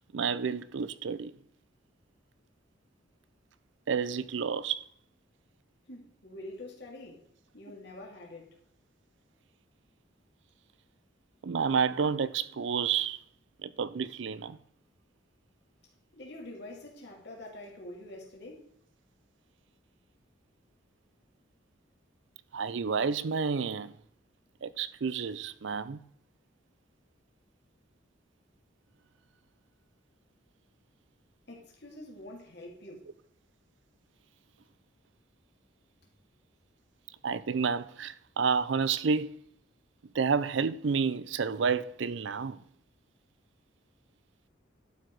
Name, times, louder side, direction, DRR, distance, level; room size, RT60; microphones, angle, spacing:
voice 1, 0.1-1.3 3.9-4.8 11.4-13.2 13.6-14.6 22.5-23.9 24.6-26.0 37.2-39.3 40.1-42.6, right 5 dB, 70° right, 0.5 m, -30 dB
voice 2, 5.9-8.6 16.1-18.7 31.5-33.1, left 1 dB, 55° left, 2.4 m, -46 dB
11.5 x 4.8 x 4.6 m
head